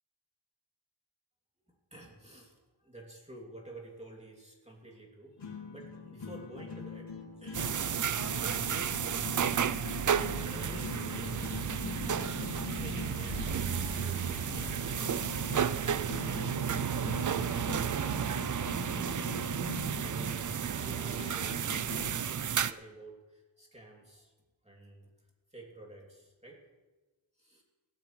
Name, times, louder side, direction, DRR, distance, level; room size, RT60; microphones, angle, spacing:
voice 1, 1.7-9.5 10.1-11.5 12.7-16.1 19.9-20.4 20.8-24.3 24.6-25.1 25.5-26.6 27.4-27.6, right 1 dB, 15° right, -2 dB, 2.8 m, -52 dB
sound 1, 5.4-22.4, left 4 dB, 65° left, 2.3 m, -43 dB
sound 2, 7.5-22.7, right 8 dB, 40° right, 0.4 m, -32 dB
sound 3, 10.3-18.6, left 3 dB, 45° left, 1.4 m, -47 dB
17.5 x 12.5 x 3.2 m, 1.2 s
wide cardioid pair, 70°, 48 cm